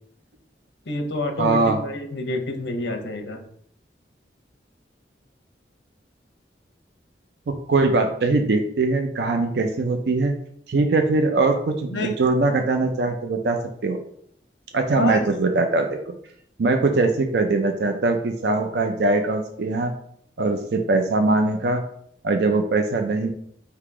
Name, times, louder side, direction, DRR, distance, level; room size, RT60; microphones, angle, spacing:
voice 1, 0.9-3.4 11.9-12.1 14.9-15.2, left 2 dB, 80° left, 5 dB, 0.8 m, -28 dB
voice 2, 1.4-1.8 7.5-10.3 10.7-14.0 14.7-16.2 16.6-19.9 20.4-21.8 22.2-23.3, right 3 dB, 65° right, 5 dB, 0.4 m, -21 dB
3.7 x 2.9 x 4.7 m, 0.67 s
head